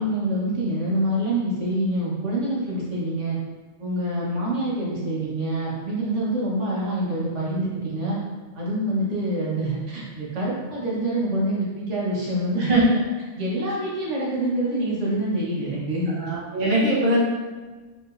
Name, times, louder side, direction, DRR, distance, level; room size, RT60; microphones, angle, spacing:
voice 1, 0.0-3.4 3.8-8.2 8.5-13.0 13.4-16.2, right 1 dB, 85° right, -6 dB, 1.5 m, -26 dB
voice 2, 16.1-17.2, right 1 dB, 45° right, -6 dB, 1.2 m, -22 dB
4.7 x 3.4 x 2.5 m, 1.3 s
omnidirectional pair, 1.2 m